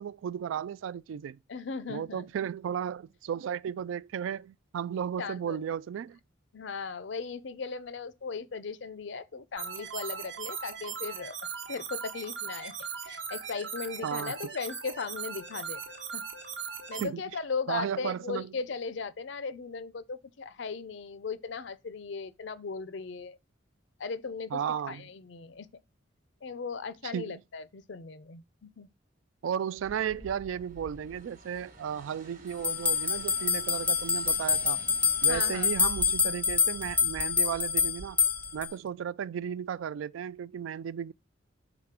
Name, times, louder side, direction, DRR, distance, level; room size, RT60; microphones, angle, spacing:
voice 1, 0.0-1.4 1.9-6.2 14.0-14.3 17.0-17.2 17.7-18.5 24.5-25.0 27.1-27.3 29.4-34.8 35.2-38.2 38.5-41.1, right 8 dB, 85° right, 0.3 m, -34 dB
voice 2, 1.5-2.3 5.2-5.6 6.5-11.4 11.7-12.7 13.0-15.8 16.1-16.2 16.9-23.4 24.0-24.6 24.9-25.7 26.4-28.9 35.2-35.7, left 5 dB, 65° left, 0.5 m, -37 dB
sound 1, 9.6-17.0, right 7 dB, 65° right, 1.0 m, -39 dB
sound 2, 29.8-38.7, right 1 dB, 45° right, 1.2 m, -49 dB
sound 3, 32.6-38.7, left 6 dB, 10° left, 0.4 m, -27 dB
4.9 x 4.0 x 5.8 m
head